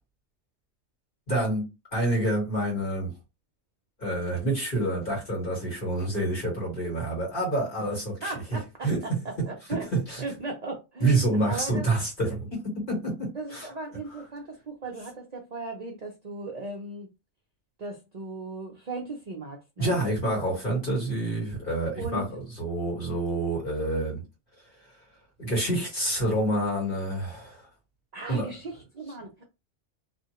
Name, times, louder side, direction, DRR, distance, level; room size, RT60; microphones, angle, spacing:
voice 1, 1.3-3.1 4.0-8.3 8.8-9.0 9.7-10.2 11.0-13.7 19.8-22.2 22.6-24.2 25.4-27.7 28.3-28.5, right 1 dB, 45° left, 1.7 m, -27 dB
voice 2, 8.2-9.9 10.2-11.8 13.3-17.1 17.8-20.0 22.0-22.3 28.1-29.4, right 3 dB, 50° right, 0.5 m, -37 dB
2.7 x 2.4 x 2.9 m
omnidirectional pair, 1.3 m